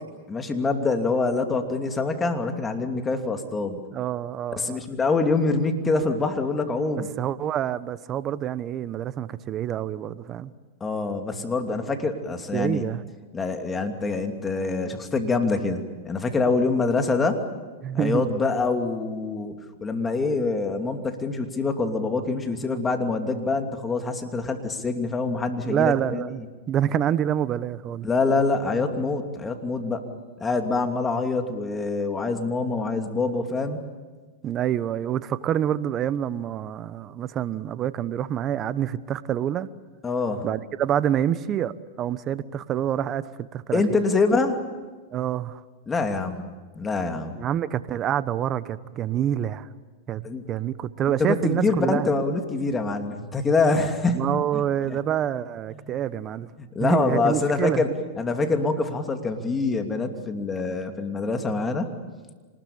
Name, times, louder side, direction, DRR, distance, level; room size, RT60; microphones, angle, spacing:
voice 1, 0.3-3.8 4.6-7.1 10.8-12.9 13.3-17.4 17.9-26.2 28.0-30.0 30.4-33.8 40.0-40.4 43.7-44.6 45.9-47.3 50.2-50.4 51.2-54.6 54.9-55.0 55.7-55.9 56.6-57.9 58.2-61.9, left 3 dB, 20° left, 5 dB, 2.8 m, -25 dB
voice 2, 3.9-4.8 7.2-10.5 12.5-13.0 17.8-18.3 25.6-28.1 34.4-39.7 40.4-44.0 45.1-45.6 47.4-49.7 50.1-52.1 54.1-56.5 56.8-57.8, right 10 dB, 35° right, 15 dB, 1.1 m, -27 dB
26.0 x 20.0 x 8.8 m, 1.4 s
hypercardioid pair, 110°, 0 cm